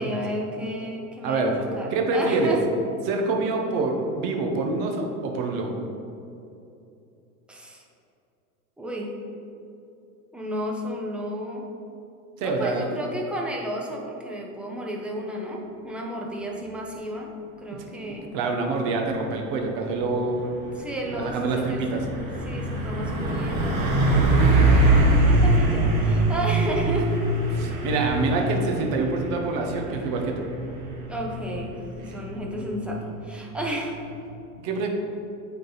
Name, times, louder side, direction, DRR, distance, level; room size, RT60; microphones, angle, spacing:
voice 1, 0.0-2.6 7.5-7.8 8.8-9.1 10.3-11.6 12.4-17.3 17.6-18.3 20.8-22.1 22.4-27.1 31.1-34.0, right 1 dB, ahead, -2 dB, 0.6 m, -32 dB
voice 2, 1.2-1.5 1.9-2.6 3.1-5.7 12.4-12.9 18.0-20.5 21.1-22.0 27.5-30.5 34.6-34.9, right 3 dB, 50° right, 2 dB, 1.1 m, -26 dB
Truck, 20.0-34.3, right 2 dB, 65° right, 1.4 m, -24 dB
8.7 x 3.9 x 3.9 m, 2.7 s
supercardioid pair, 135°, 44 cm